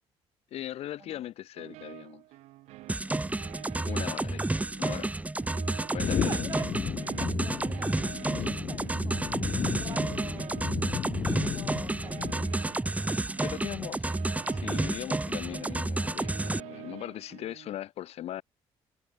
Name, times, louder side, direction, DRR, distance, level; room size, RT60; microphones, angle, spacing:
voice 1, 0.5-2.2 3.9-4.5 4.8-5.1 5.9-6.3 9.5-9.6 13.4-14.1 14.5-18.4, left 12 dB, 70° left, 1.8 m, -39 dB
sound 1, 1.6-17.8, right 18 dB, 85° right, 3.6 m, -48 dB
sound 2, 2.9-16.6, right 2 dB, 15° right, 1.2 m, -31 dB
voice 2, 3.1-3.4 6.2-6.7 7.2-10.6 11.2-12.8 13.3-13.5, right 5 dB, 35° right, 1.9 m, -46 dB
sound 3, 6.0-12.7, left 9 dB, 45° left, 0.4 m, -34 dB
cardioid pair, 80°, 11 cm